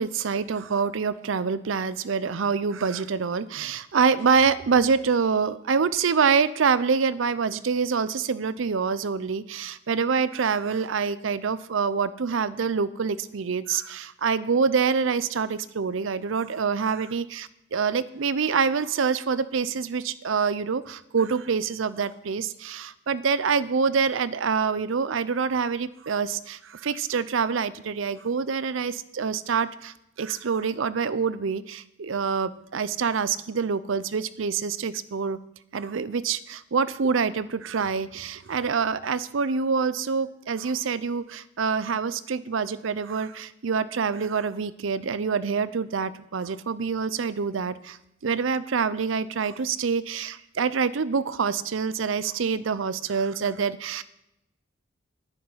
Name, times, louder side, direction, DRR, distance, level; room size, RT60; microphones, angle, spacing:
voice 1, 0.0-35.4 35.7-54.0, right 5 dB, 75° right, 15 dB, 0.5 m, -26 dB
10.0 x 9.9 x 5.5 m, 0.84 s
head